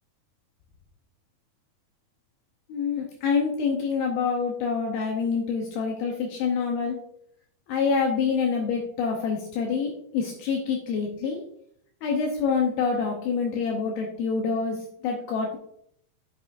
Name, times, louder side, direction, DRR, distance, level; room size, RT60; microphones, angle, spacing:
voice 1, 2.7-7.0 7.7-11.4 12.0-15.6, left 5 dB, 80° left, 1 dB, 2.7 m, -26 dB
9.7 x 6.0 x 2.5 m, 0.68 s
omnidirectional pair, 4.5 m